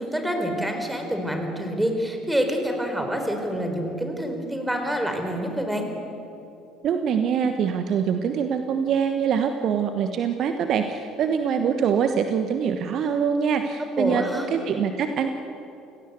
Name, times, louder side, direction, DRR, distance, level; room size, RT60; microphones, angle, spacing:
voice 1, 0.0-5.9 14.0-14.5, equal, 5° right, 4 dB, 4.5 m, -27 dB
voice 2, 6.8-14.2 14.5-15.3, right 7 dB, 45° right, 7 dB, 1.2 m, -24 dB
30.0 x 17.0 x 8.2 m, 2.8 s
figure-of-eight pair, 55°, 0 cm